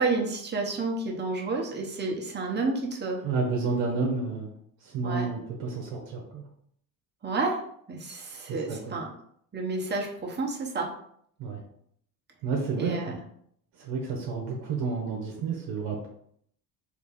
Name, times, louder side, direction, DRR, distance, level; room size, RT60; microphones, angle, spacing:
voice 1, 0.0-3.2 5.0-5.3 7.2-7.6 7.9-9.1 9.5-10.9 12.8-13.2, right 3 dB, 25° right, 0 dB, 1.0 m, -30 dB
voice 2, 3.2-4.5 4.8-6.4 8.5-9.0 11.4-11.6 12.4-13.2 13.8-16.1, right 4 dB, 85° right, 0 dB, 0.9 m, -30 dB
3.3 x 2.7 x 4.0 m, 0.67 s
supercardioid pair, 80°, 40 cm